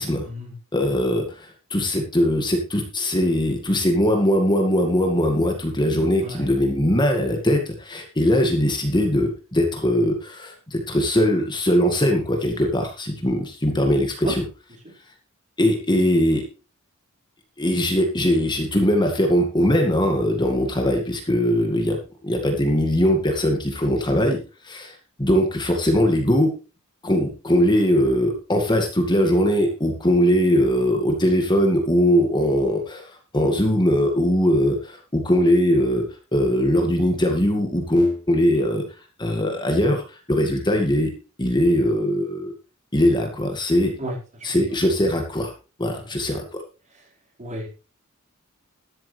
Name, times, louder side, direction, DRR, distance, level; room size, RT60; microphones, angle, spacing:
voice 1, 0.7-14.4 15.6-16.4 17.6-22.0 22.2-26.5 27.0-36.0 36.3-38.8 39.2-41.1 41.4-42.5 42.9-43.9 44.4-45.5 45.8-46.6, equal, 20° left, 3 dB, 2.1 m, -21 dB
voice 2, 6.2-6.5 14.2-14.3 44.0-44.2 44.5-44.6 47.4-47.7, right 1 dB, 35° right, -2 dB, 4.9 m, -32 dB
13.5 x 12.0 x 3.4 m, 0.34 s
head